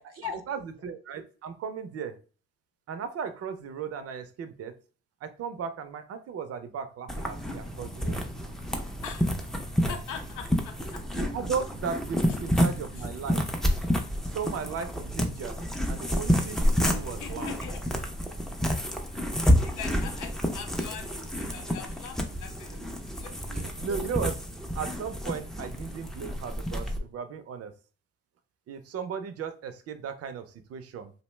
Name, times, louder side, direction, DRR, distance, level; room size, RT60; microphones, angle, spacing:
voice 1, 0.0-2.2 2.9-4.7 5.2-8.2 11.2-13.4 14.2-15.6 15.9-17.5 23.4-24.4 24.8-27.7 28.7-31.1, right 6 dB, 50° right, 10 dB, 0.5 m, -36 dB
sound 1, 7.1-27.0, equal, ahead, 0.4 m, -29 dB
voice 2, 9.0-9.6 9.9-11.0 16.8-18.1 18.7-18.8 19.4-21.1 21.4-22.8 23.2-23.6, left 7 dB, 85° left, 7 dB, 0.6 m, -41 dB
2.6 x 2.1 x 3.1 m, 0.38 s
cardioid pair, 90°, 30 cm